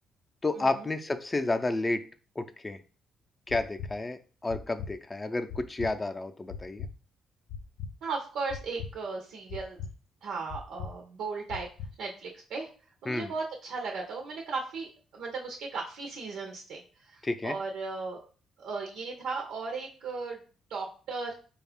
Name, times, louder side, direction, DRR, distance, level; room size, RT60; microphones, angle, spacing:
voice 1, 0.4-2.0 2.4-2.8 3.5-6.9 13.1-13.3 17.2-17.6, left 2 dB, 20° left, 8 dB, 0.4 m, -31 dB
sound 1, 3.5-3.9 4.5-4.9 5.5-5.9 6.5-6.9 7.5-7.9 8.5-8.9 9.5-9.9 10.5-10.9 11.5-11.9, left 6 dB, 80° left, 0.5 m, -38 dB
voice 2, 8.0-9.8 10.2-11.7 12.0-12.7 13.0-14.9 15.1-16.8 17.1-18.2 18.6-20.4 20.7-21.3, right 4 dB, 85° right, 0 dB, 0.7 m, -36 dB
4.2 x 2.3 x 3.5 m, 0.38 s
cardioid pair, 90°, 0 cm